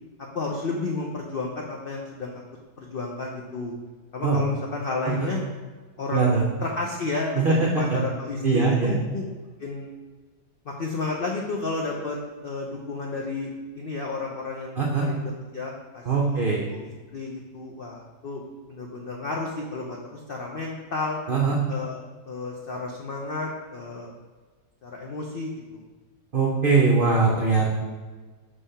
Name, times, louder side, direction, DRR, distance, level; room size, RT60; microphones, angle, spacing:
voice 1, 0.3-2.4 2.8-3.7 4.1-5.4 6.0-9.2 9.6-9.9 10.6-12.2 12.4-16.4 16.7-18.4 18.7-21.2 21.7-24.1 24.8-25.8, left 3 dB, 85° left, -1 dB, 0.5 m, -32 dB
voice 2, 6.1-6.4 7.3-7.5 7.9-8.0 8.4-8.9 14.8-15.0 16.1-16.6 21.3-21.6 26.3-27.8, right 4 dB, 55° right, -2 dB, 0.6 m, -21 dB
5.5 x 3.4 x 5.4 m, 1.3 s
omnidirectional pair, 1.8 m